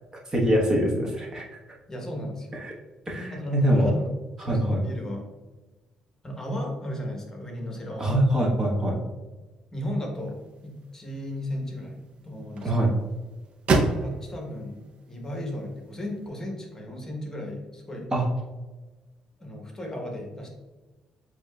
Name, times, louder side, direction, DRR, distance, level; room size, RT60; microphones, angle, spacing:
voice 1, 0.3-1.4 2.5-2.7 3.1-3.9 4.4-4.8 8.0-9.0 12.6-12.9 18.1-18.3, equal, 30° right, -2 dB, 1.2 m, -23 dB
voice 2, 1.9-2.5 3.3-4.1 4.4-5.3 6.2-8.2 9.7-12.9 14.0-18.1 19.4-20.5, left 1 dB, 25° left, 0 dB, 1.2 m, -35 dB
sound 1, 10.1-16.3, right 3 dB, 60° right, 0.6 m, -32 dB
7.6 x 3.0 x 2.3 m, 1.2 s
cardioid pair, 80°, 2 cm